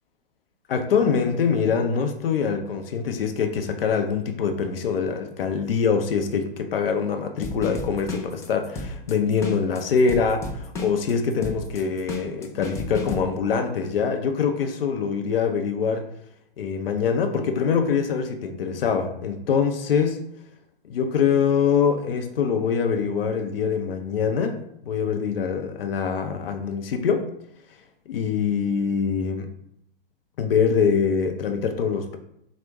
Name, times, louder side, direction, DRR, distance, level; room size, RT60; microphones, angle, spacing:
voice 1, 0.7-16.1 16.6-20.2 20.9-24.6 24.9-27.3 28.1-29.5 30.4-32.2, left 6 dB, 75° left, 5 dB, 0.6 m, -24 dB
sound 1, 7.4-13.2, left 2 dB, 10° left, 0.3 m, -33 dB
4.6 x 2.1 x 3.4 m, 0.74 s
hypercardioid pair, 120°, 29 cm